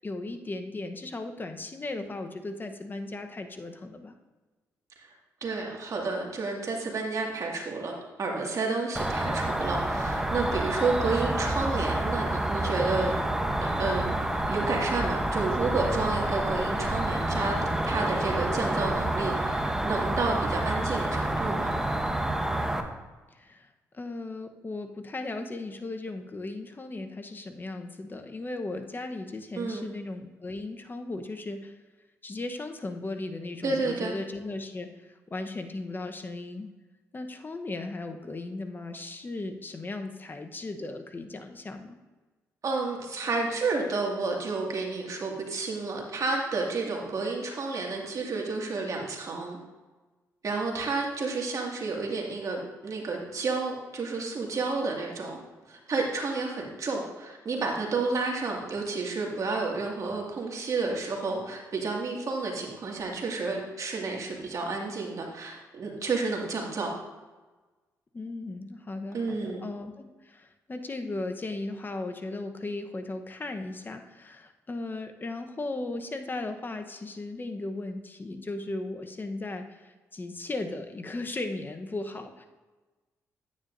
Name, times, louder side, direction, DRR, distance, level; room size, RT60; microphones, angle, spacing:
voice 1, 0.0-4.1 23.3-23.7 23.9-31.7 32.2-36.7 37.1-42.0 68.1-82.4, left 2 dB, 30° left, 6 dB, 1.0 m, -36 dB
voice 2, 5.4-13.1 13.6-14.1 14.5-17.6 17.9-21.7 29.6-29.9 33.6-34.1 42.6-49.6 50.4-55.4 55.7-66.9 69.1-69.7, right 3 dB, 55° right, -1 dB, 2.1 m, -31 dB
Cricket, 8.9-22.8, right 1 dB, 5° right, 0.9 m, -28 dB
9.5 x 9.3 x 2.6 m, 1.2 s
cardioid pair, 70°, 7 cm